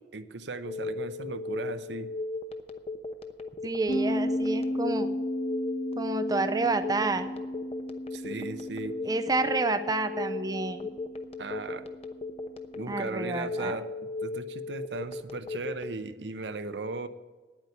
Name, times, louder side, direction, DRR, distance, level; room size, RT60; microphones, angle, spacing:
voice 1, 0.1-2.1 8.1-8.9 11.4-11.8 12.7-13.9 14.2-17.1, right 3 dB, 75° right, 10 dB, 0.8 m, -37 dB
Telephone, 0.6-15.9, left 3 dB, 35° left, 0.9 m, -36 dB
voice 2, 3.6-5.2 6.0-7.3 9.0-10.9 12.9-13.8, right 3 dB, 20° right, 9 dB, 0.5 m, -29 dB
sound 1, 3.9-13.3, equal, 50° left, 1.7 m, -35 dB
9.8 x 8.9 x 8.0 m, 1.3 s
head